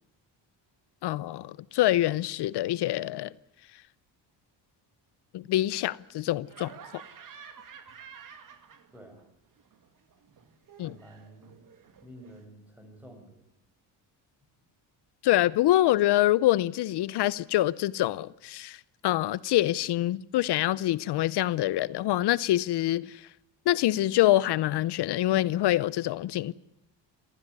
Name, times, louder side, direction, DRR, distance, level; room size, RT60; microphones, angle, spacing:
voice 1, 1.0-3.3 5.3-7.0 10.8-10.9 15.2-23.2 23.7-26.5, left 15 dB, 65° left, 0.7 m, -25 dB
Laughter, 6.5-9.2 9.5-12.4, right 7 dB, 45° right, 2.4 m, -50 dB
voice 2, 8.9-9.3 10.8-11.5 12.0-13.4, right 1 dB, 5° right, 5.8 m, -50 dB
23.5 x 15.0 x 9.6 m
cardioid pair, 160°, 44 cm